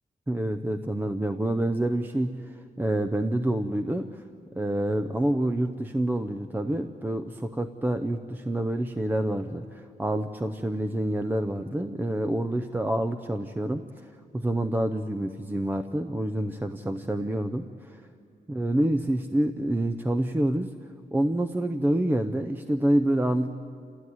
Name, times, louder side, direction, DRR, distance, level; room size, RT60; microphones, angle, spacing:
voice 1, 0.3-4.2 4.6-18.0 18.5-20.7 21.1-23.6, right 1 dB, 10° right, 6 dB, 0.6 m, -27 dB
29.0 x 15.0 x 9.5 m, 2.5 s
wide cardioid pair, 140°, 16 cm